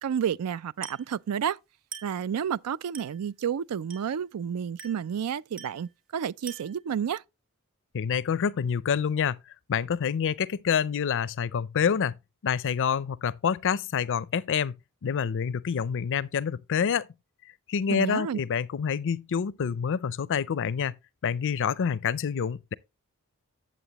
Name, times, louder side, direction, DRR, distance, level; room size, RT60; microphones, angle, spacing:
voice 1, 0.0-1.6 2.0-7.2 17.9-18.4, right 8 dB, 85° right, 0.4 m, -30 dB
Glass, 0.8-1.2 1.9-2.3 2.9-3.3 3.9-4.2 4.8-5.1 5.6-5.9 6.5-6.9, right 6 dB, 65° right, 2.4 m, -44 dB
voice 2, 7.9-9.4 9.7-12.1 12.4-14.7 15.0-17.1 17.7-20.9 21.2-22.7, left 7 dB, 60° left, 0.4 m, -27 dB
10.0 x 7.6 x 2.9 m
head